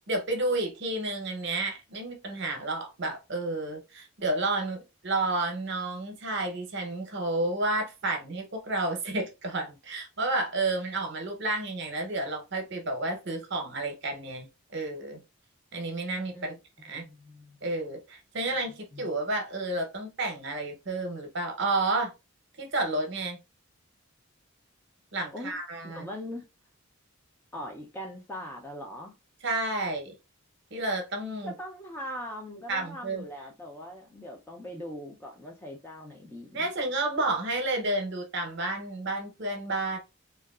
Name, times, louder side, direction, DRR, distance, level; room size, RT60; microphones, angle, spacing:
voice 1, 0.1-14.5 14.7-15.2 15.7-16.5 16.8-17.0 17.6-22.1 22.6-23.4 25.1-26.1 29.4-30.2 30.7-31.5 32.7-33.2 36.5-40.0, right 2 dB, 55° right, 0.7 m, -31 dB
voice 2, 17.0-17.6 18.9-19.1 25.3-26.4 27.5-29.1 31.4-36.7, left 1 dB, 10° left, 0.3 m, -41 dB
2.7 x 2.3 x 2.3 m
head